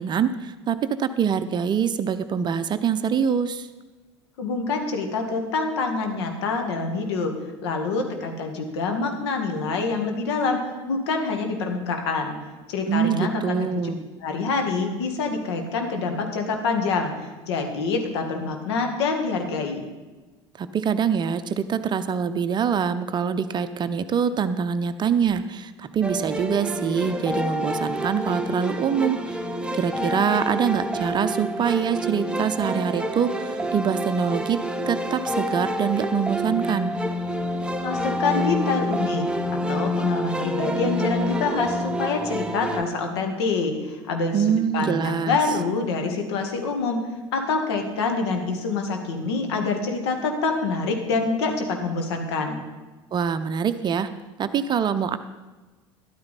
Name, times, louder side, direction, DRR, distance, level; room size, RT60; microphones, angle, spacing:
voice 1, 0.0-3.7 12.9-14.0 20.6-29.4 29.7-34.6 34.9-36.9 44.3-45.4 53.1-54.1 54.4-55.2, right 7 dB, 30° right, 11 dB, 0.6 m, -24 dB
voice 2, 4.4-7.3 7.6-10.6 10.9-12.4 12.7-13.7 14.2-17.1 17.5-19.9 37.8-39.3 39.7-44.4 44.7-47.0 47.3-52.6, left 4 dB, 65° left, 4 dB, 1.8 m, -26 dB
sound 1, 26.0-42.8, equal, 5° right, 1.1 m, -28 dB
13.0 x 11.0 x 4.1 m, 1.2 s
figure-of-eight pair, 65°, 15 cm